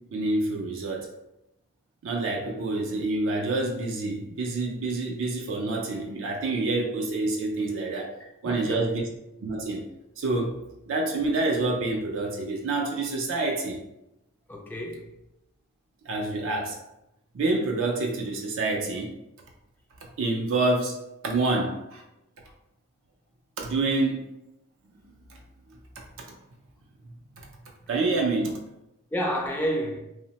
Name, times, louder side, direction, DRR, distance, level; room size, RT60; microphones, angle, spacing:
voice 1, 0.1-1.1 2.0-8.1 8.4-9.0 9.4-9.8 10.2-13.8 16.1-16.8 17.3-19.1 20.2-21.0 21.2-22.0 23.6-24.3 25.3-25.4 27.9-28.6, right 2 dB, 60° right, 0.4 m, -27 dB
voice 2, 8.2-9.0 14.5-15.2 29.1-30.0, equal, 10° left, 0.4 m, -30 dB
2.7 x 2.0 x 2.8 m
head